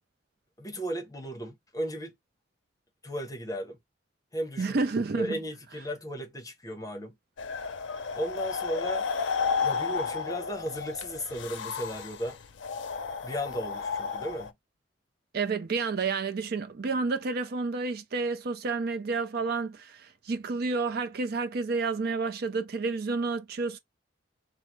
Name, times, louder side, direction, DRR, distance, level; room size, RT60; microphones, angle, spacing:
voice 1, 0.6-2.1 3.0-3.8 4.3-4.8 5.1-7.2 8.1-9.1 9.6-12.4 13.2-14.5, equal, 20° left, 0.8 m, -35 dB
voice 2, 4.6-5.4 15.3-23.8, right 4 dB, 55° right, 0.4 m, -30 dB
sound 1, 7.4-14.5, left 5 dB, 90° left, 0.5 m, -32 dB
3.4 x 2.0 x 3.2 m
head